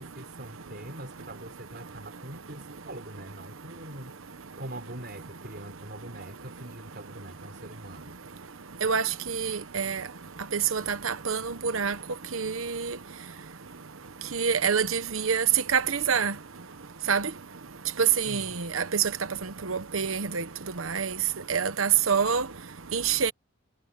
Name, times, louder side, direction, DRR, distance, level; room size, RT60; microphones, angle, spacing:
voice 1, 0.0-4.1 4.5-8.2 18.3-18.5, right 1 dB, 55° right, 4.0 m, -43 dB
voice 2, 8.8-10.0 10.5-11.9 12.3-13.0 14.3-15.4 15.7-16.3 17.1-17.3 18.0-19.0 19.6-20.4 20.8-21.1 21.5-22.5 22.9-23.3, right 6 dB, 85° right, 1.0 m, -26 dB
head